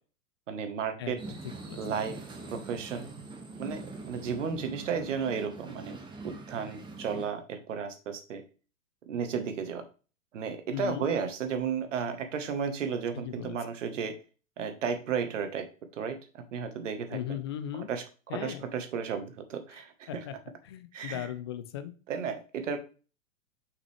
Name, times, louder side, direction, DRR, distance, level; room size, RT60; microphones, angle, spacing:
voice 1, 0.5-1.2 1.8-2.2 2.5-3.1 3.6-3.8 4.1-6.0 6.2-8.4 9.1-9.8 10.3-14.1 14.6-15.6 16.0-17.4 17.9-20.2 20.9-21.2 22.1-22.8, right 6 dB, 60° right, 8 dB, 1.4 m, -33 dB
sound 1, 1.2-7.3, right 3 dB, 10° right, 1.3 m, -43 dB
voice 2, 10.7-11.1 13.1-13.6 17.1-17.9 18.3-18.6 20.1-20.3 20.6-21.9, left 11 dB, 20° left, 11 dB, 0.3 m, -37 dB
5.9 x 5.8 x 3.3 m, 0.35 s
figure-of-eight pair, 105°, 42 cm